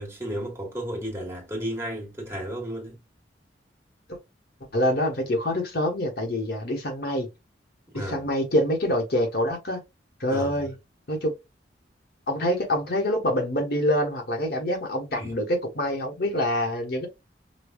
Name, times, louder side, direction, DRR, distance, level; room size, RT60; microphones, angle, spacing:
voice 1, 0.0-3.0 7.9-8.3 10.3-10.6 15.1-15.3, equal, 15° right, 1.2 m, -33 dB
voice 2, 4.7-7.3 7.9-9.8 10.2-10.8 11.1-11.3 12.3-17.1, left 1 dB, 60° left, 1.1 m, -26 dB
5.2 x 2.2 x 2.2 m
head